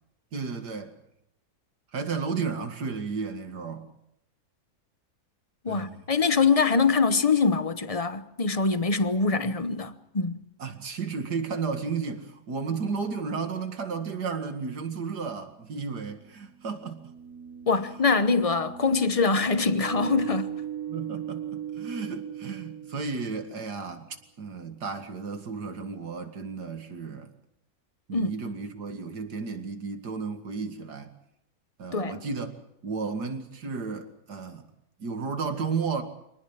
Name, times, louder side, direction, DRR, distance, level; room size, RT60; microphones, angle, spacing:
voice 1, 0.3-0.9 1.9-3.9 5.7-6.0 10.6-17.1 20.9-27.3 28.1-31.1 31.8-34.7 35.0-36.0, right 5 dB, 90° right, 2.6 m, -33 dB
voice 2, 5.6-10.4 17.7-20.5 28.1-28.3 31.9-32.2, left 4 dB, 30° left, 0.9 m, -24 dB
sound 1, 15.1-15.2 16.7-23.5, right 10 dB, 60° right, 1.5 m, -38 dB
25.5 x 19.5 x 7.4 m
omnidirectional pair, 1.7 m